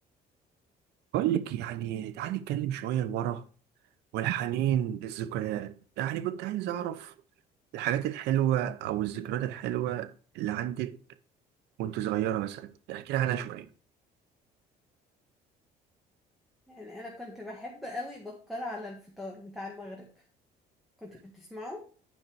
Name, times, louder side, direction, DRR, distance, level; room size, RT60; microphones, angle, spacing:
voice 1, 1.1-3.4 4.1-7.1 7.7-11.0 11.8-13.7, right 12 dB, 85° right, 0.7 m, -30 dB
voice 2, 16.7-20.1 21.0-21.8, left 2 dB, ahead, 1.7 m, -40 dB
9.2 x 5.4 x 4.6 m
cardioid pair, 110°, 17 cm